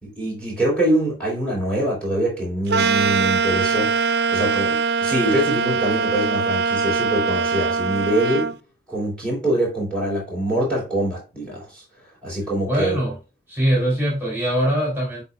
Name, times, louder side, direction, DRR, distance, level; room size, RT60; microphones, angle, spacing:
voice 1, 0.0-3.9 4.3-8.6 8.9-11.8 12.2-13.0, right 1 dB, 5° left, 3.5 m, -24 dB
sound 1, 2.7-8.5, right 5 dB, 75° right, 0.6 m, -22 dB
voice 2, 12.6-13.2 13.5-15.2, equal, 15° right, 3.2 m, -22 dB
11.0 x 3.8 x 2.3 m
head